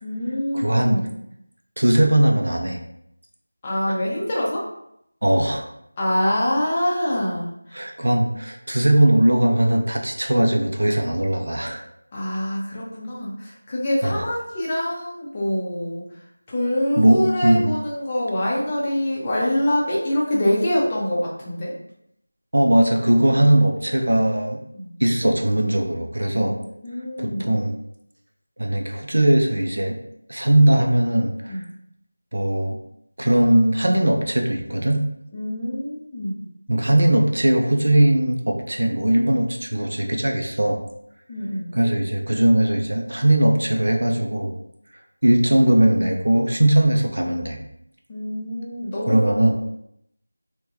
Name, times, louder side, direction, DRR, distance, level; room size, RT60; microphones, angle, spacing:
voice 1, 0.0-1.2 3.6-4.7 6.0-7.9 12.1-16.2 16.5-21.7 24.7-24.9 26.3-27.6 31.5-31.6 35.3-36.5 41.3-41.7 48.1-49.5, left 1 dB, 15° left, -5 dB, 0.5 m, -25 dB
voice 2, 0.5-1.0 1.8-2.8 5.2-5.6 7.7-11.8 14.0-14.2 17.0-17.7 22.5-24.6 25.0-26.5 27.2-27.7 28.6-30.0 30.3-31.6 32.3-32.8 33.2-35.0 36.7-40.8 41.7-44.5 45.2-47.6 49.1-49.5, right 1 dB, 65° right, 2 dB, 0.5 m, -19 dB
3.0 x 2.2 x 3.4 m, 0.76 s
figure-of-eight pair, 175°, 0 cm